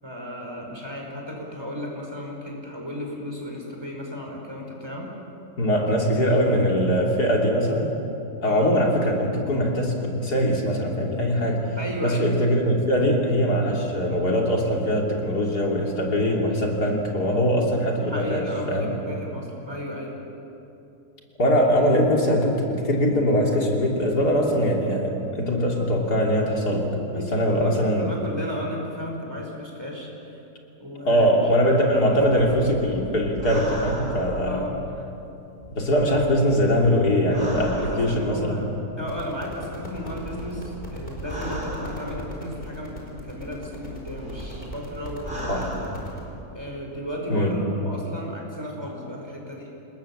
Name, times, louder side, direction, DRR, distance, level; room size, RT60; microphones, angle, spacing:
voice 1, 0.0-5.1 6.1-6.6 8.4-8.7 11.8-12.3 18.0-20.2 27.1-30.4 30.8-32.0 32.3-32.5 34.4-34.8 36.0-36.1 37.5-45.7 46.5-49.7, equal, 15° right, -1 dB, 5.2 m, -34 dB
voice 2, 5.6-7.9 8.4-11.8 12.0-18.9 21.4-28.0 31.1-34.6 35.7-38.6 45.5-45.7 47.3-47.6, equal, 85° left, -1 dB, 3.7 m, -22 dB
sound 1, 31.8-35.1 35.6-38.6 39.4-42.6 43.2-46.6 46.9-47.0, equal, 35° right, 4.6 m, -37 dB
sound 2, 39.0-46.2, equal, 35° left, 5.2 m, -39 dB
27.5 x 20.5 x 7.4 m, 2.8 s
omnidirectional pair, 1.6 m